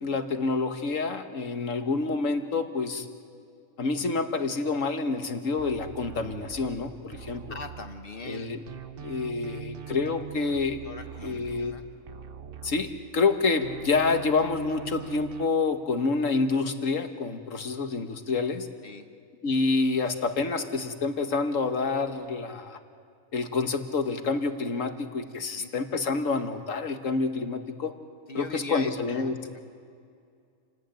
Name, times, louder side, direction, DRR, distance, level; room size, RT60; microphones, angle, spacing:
voice 1, 0.0-3.1 3.8-7.6 8.2-8.6 9.0-10.8 11.2-11.7 12.6-18.7 19.4-22.8 23.3-27.9 28.3-29.3, left 4 dB, 75° left, 7 dB, 1.8 m, -28 dB
sound 1, 5.6-8.4 8.7-13.3 13.6-15.5, right 9 dB, 50° right, 0.9 m, -43 dB
voice 2, 7.3-8.5 10.8-11.8 18.8-19.0 25.4-25.7 28.3-29.6, left 2 dB, 45° left, 7 dB, 1.5 m, -40 dB
28.5 x 18.5 x 9.1 m, 2.3 s
omnidirectional pair, 1.4 m